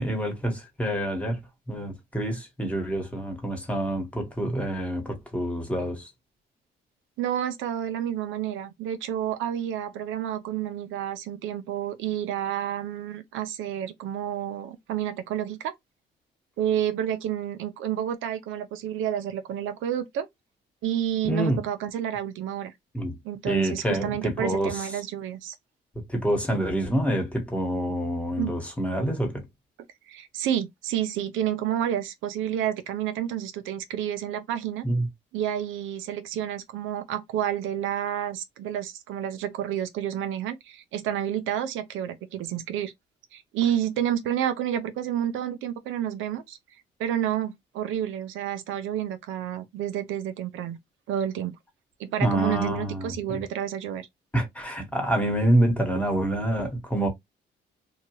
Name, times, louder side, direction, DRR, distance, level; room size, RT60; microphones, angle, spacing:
voice 1, 0.0-1.4 1.7-6.1 21.2-21.6 22.9-23.2 23.4-24.8 26.1-29.4 34.8-35.1 52.2-53.4 54.3-57.1, right 1 dB, 5° left, 1.1 m, -27 dB
voice 2, 7.2-15.7 16.6-20.3 20.8-22.7 23.2-25.5 28.4-28.5 30.1-34.9 35.3-42.9 43.3-46.6 47.0-50.8 51.1-51.5 52.0-54.1, right 10 dB, 85° right, 0.5 m, -30 dB
2.8 x 2.3 x 2.8 m
cardioid pair, 90°, 20 cm